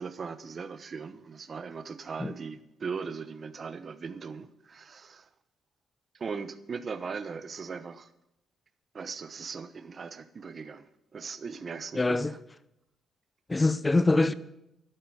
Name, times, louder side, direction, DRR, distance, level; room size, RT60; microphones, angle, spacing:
voice 1, 0.0-5.3 6.1-8.1 8.9-12.4, right 5 dB, 40° right, 1.1 m, -39 dB
voice 2, 11.9-12.3 13.5-14.3, left 2 dB, 20° left, 0.7 m, -24 dB
12.0 x 8.9 x 9.2 m
cardioid pair, 90°, 0 cm